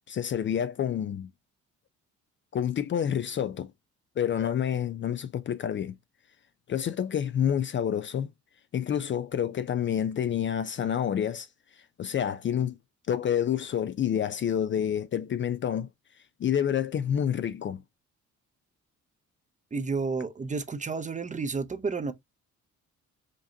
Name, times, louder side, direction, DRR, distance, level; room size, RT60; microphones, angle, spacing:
voice 1, 0.1-1.3 2.5-3.7 4.2-5.9 6.7-8.3 8.7-11.5 12.0-12.8 13.1-15.9 16.4-17.8, left 9 dB, 40° left, 0.4 m, -28 dB
voice 2, 19.7-22.1, right 4 dB, 25° right, 0.7 m, -31 dB
5.1 x 2.7 x 2.6 m
cardioid pair, 90°, 30 cm